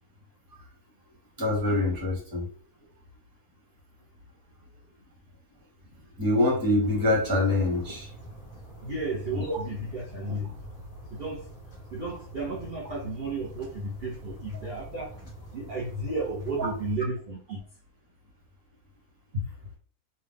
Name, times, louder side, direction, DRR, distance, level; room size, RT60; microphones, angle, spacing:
voice 1, 1.4-2.5 6.2-8.1 9.3-9.6 16.6-16.7, left 2 dB, 15° right, 1.2 m, -25 dB
sound 1, 6.8-17.0, right 1 dB, 20° left, 2.1 m, -45 dB
voice 2, 8.8-10.5 11.1-11.5 11.9-15.1 15.5-17.6 19.3-19.5, right 2 dB, 40° right, 1.2 m, -33 dB
3.6 x 2.8 x 3.5 m
omnidirectional pair, 1.7 m